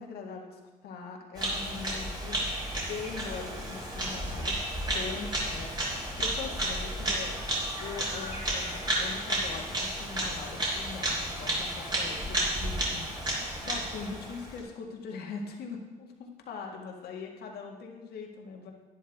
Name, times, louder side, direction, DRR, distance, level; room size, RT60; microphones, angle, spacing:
voice 1, 0.0-2.4 2.8-7.4 7.8-18.7, left 5 dB, 70° left, 1 dB, 1.9 m, -41 dB
Bird vocalization bird call bird song, 1.4-14.6, right 1 dB, 25° right, 3.4 m, -32 dB
12.0 x 10.0 x 3.6 m, 1.2 s
cardioid pair, 110°, 17 cm